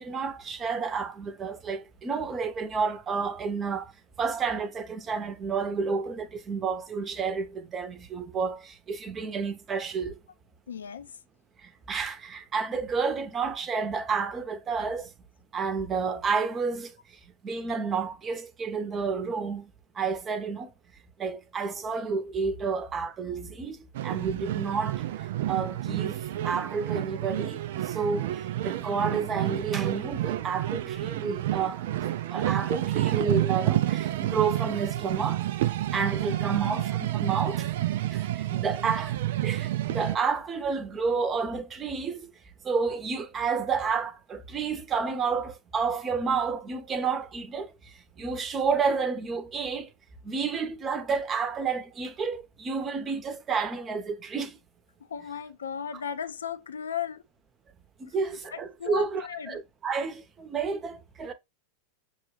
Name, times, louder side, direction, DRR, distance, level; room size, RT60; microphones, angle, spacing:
voice 1, 0.0-3.9 4.2-10.2 11.6-15.1 15.5-17.0 17.4-20.7 21.2-25.0 25.5-26.2 26.4-31.9 32.3-35.5 35.9-42.3 42.6-47.7 48.2-49.9 50.2-54.6 58.0-61.3, right 5 dB, 25° right, 0.7 m, -30 dB
voice 2, 10.7-11.1 22.7-22.8 36.3-36.8 55.1-57.2 58.5-59.6, left 8 dB, 75° left, 0.5 m, -36 dB
sound 1, 23.9-40.2, right 14 dB, 60° right, 0.3 m, -29 dB
6.1 x 2.3 x 3.1 m
figure-of-eight pair, 90°, 0 cm